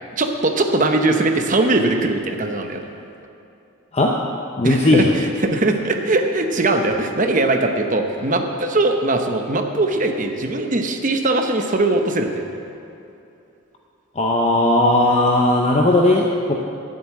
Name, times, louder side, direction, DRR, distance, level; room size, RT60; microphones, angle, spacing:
voice 1, 0.1-2.8 4.6-12.4, right 2 dB, 40° right, 5 dB, 0.9 m, -20 dB
voice 2, 4.6-5.1 14.2-16.5, left 1 dB, 30° left, 0 dB, 0.7 m, -16 dB
11.0 x 7.8 x 8.5 m, 2.7 s
head